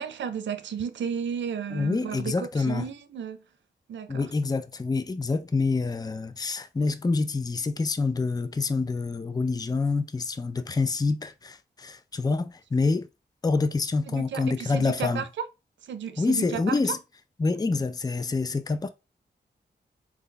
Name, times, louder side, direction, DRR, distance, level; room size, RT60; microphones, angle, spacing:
voice 1, 0.0-3.4 3.9-4.3 14.1-15.5 15.8-16.8, right 7 dB, 90° right, 0.5 m, -33 dB
voice 2, 1.7-2.9 4.1-13.1 13.4-15.2 16.2-17.0 17.4-18.9, left 3 dB, 20° left, 0.4 m, -27 dB
4.5 x 2.2 x 3.8 m
cardioid pair, 55°, 18 cm